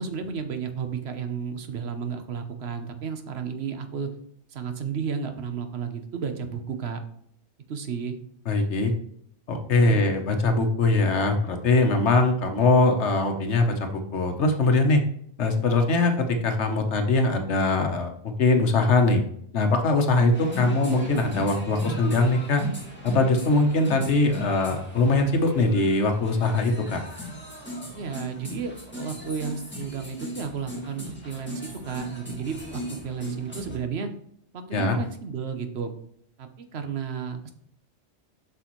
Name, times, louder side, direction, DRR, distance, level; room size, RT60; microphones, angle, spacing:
voice 1, 0.0-4.1 4.5-7.0 7.7-8.2 9.8-10.2 27.9-34.1 34.5-35.9 36.4-37.5, right 6 dB, 70° right, 7 dB, 1.1 m, -33 dB
voice 2, 8.5-8.9 9.5-15.0 15.4-18.1 18.4-19.2 19.5-22.6 23.0-27.0 34.7-35.0, left 2 dB, 80° left, 5 dB, 1.3 m, -22 dB
sound 1, 20.3-33.8, equal, 10° left, 1.5 m, -38 dB
7.8 x 6.0 x 3.1 m, 0.68 s
omnidirectional pair, 1.2 m